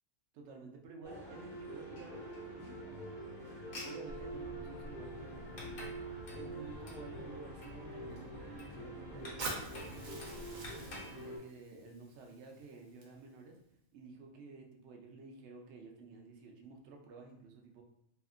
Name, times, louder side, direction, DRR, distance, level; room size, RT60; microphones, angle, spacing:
voice 1, 0.3-2.8 3.8-5.4 6.3-10.4 10.9-13.6 13.9-17.8, right 3 dB, 65° right, 2 dB, 0.8 m, -52 dB
sound 1, 1.0-11.4, right 1 dB, 50° left, 0.8 m, -45 dB
sound 2, 4.1-11.0, equal, 70° left, 0.4 m, -52 dB
Fire, 9.4-13.4, right 3 dB, 85° right, 1.1 m, -46 dB
2.7 x 2.4 x 2.4 m, 0.78 s
omnidirectional pair, 1.4 m